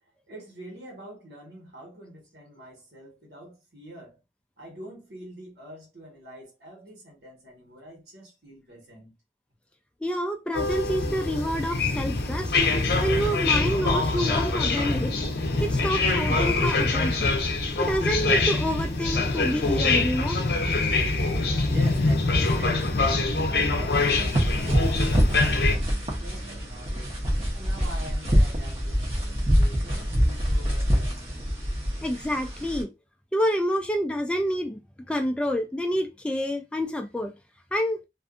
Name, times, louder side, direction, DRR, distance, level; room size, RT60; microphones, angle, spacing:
voice 1, 0.3-4.2 4.6-9.1 21.7-27.2 27.5-31.5, equal, 70° right, 1.4 m, -45 dB
voice 2, 10.0-12.5 13.0-15.1 15.6-17.3 17.8-20.4 32.0-32.9 33.3-34.8 35.1-37.3 37.7-38.0, equal, 5° left, 0.3 m, -28 dB
sound 1, 10.5-25.8, left 3 dB, 65° left, 0.6 m, -24 dB
sound 2, 24.0-32.8, equal, 35° right, 0.7 m, -25 dB
2.5 x 2.4 x 2.4 m
head